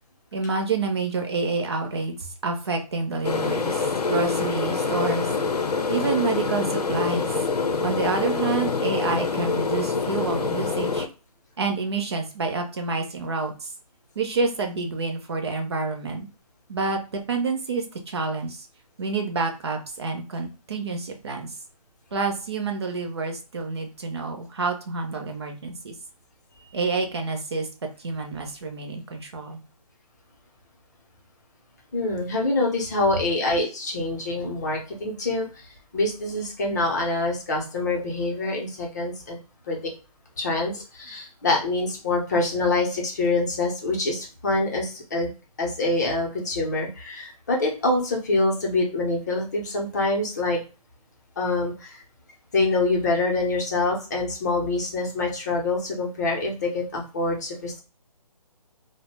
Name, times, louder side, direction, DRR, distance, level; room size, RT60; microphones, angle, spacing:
voice 1, 0.3-5.3 5.9-7.3 7.8-11.1 11.6-13.7 14.2-16.3 16.7-18.7 19.0-21.5 22.1-25.9 26.7-27.7 28.0-29.6, right 4 dB, 45° right, 3 dB, 0.5 m, -28 dB
sound 1, 3.2-11.1, left 4 dB, 80° left, 0.6 m, -25 dB
voice 2, 31.9-35.6 35.9-39.4 39.7-39.9 40.4-45.3 45.6-50.6 51.4-52.0 52.5-57.8, left 2 dB, 25° left, -1 dB, 0.6 m, -25 dB
2.6 x 2.0 x 3.2 m, 0.33 s
hypercardioid pair, 160°, 20 cm